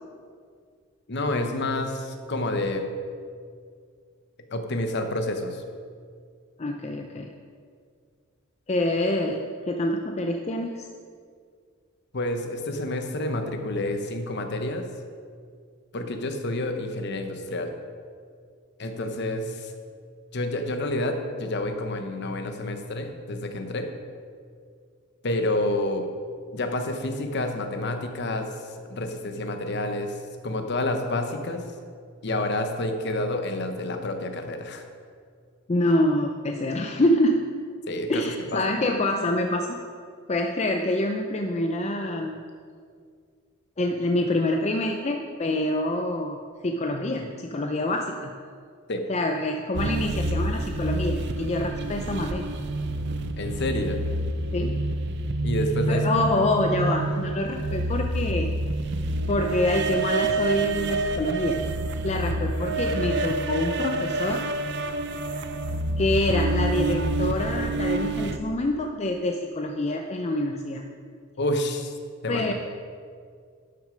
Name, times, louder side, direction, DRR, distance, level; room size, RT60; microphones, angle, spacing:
voice 1, 1.1-2.8 4.5-5.6 12.1-14.8 15.9-17.7 18.8-19.7 20.3-23.9 25.2-26.1 26.5-31.7 32.2-34.9 37.9-38.8 48.9-49.0 53.4-54.0 55.4-56.4 71.4-72.0 72.2-72.5, left 1 dB, 55° left, 6 dB, 1.0 m, -29 dB
voice 2, 6.6-7.3 8.7-10.9 35.7-37.5 38.1-39.8 40.3-42.4 43.8-48.3 49.1-52.6 54.5-54.8 55.9-58.6 59.3-61.7 62.0-64.4 66.0-70.9 72.3-72.5, left 1 dB, 30° left, 3 dB, 0.5 m, -26 dB
sound 1, 49.7-68.4, right 2 dB, 55° right, 0.6 m, -28 dB
12.0 x 6.4 x 5.1 m, 2.1 s
head